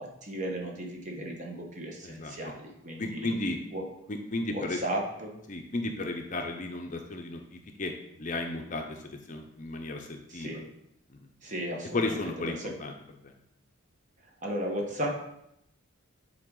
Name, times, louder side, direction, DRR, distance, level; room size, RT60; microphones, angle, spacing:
voice 1, 0.0-3.3 3.7-3.8 4.5-5.3 10.3-10.7 11.4-12.7 14.4-15.1, right 1 dB, 35° right, 0 dB, 1.0 m, -35 dB
voice 2, 2.0-2.3 3.0-3.6 4.1-4.8 5.5-7.9 8.2-10.5 11.9-12.9, left 2 dB, 35° left, 4 dB, 0.6 m, -34 dB
7.7 x 3.9 x 3.8 m, 0.79 s
head